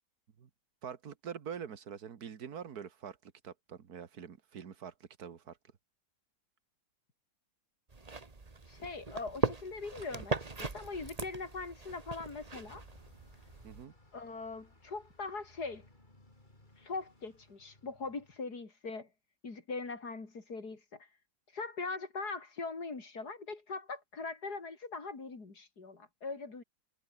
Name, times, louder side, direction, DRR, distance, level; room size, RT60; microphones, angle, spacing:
voice 1, 0.8-4.9 5.2-5.6 13.6-13.9, right 7 dB, 75° right, 1.9 m, -45 dB
sound 1, 7.9-13.8, right 3 dB, 25° right, 1.6 m, -39 dB
voice 2, 8.7-12.8 14.1-15.9 16.8-19.1 19.4-21.1 21.5-26.6, left 4 dB, 85° left, 4.1 m, -41 dB
Bus, 12.5-18.4, left 2 dB, 30° left, 4.5 m, -62 dB
omnidirectional pair, 1.7 m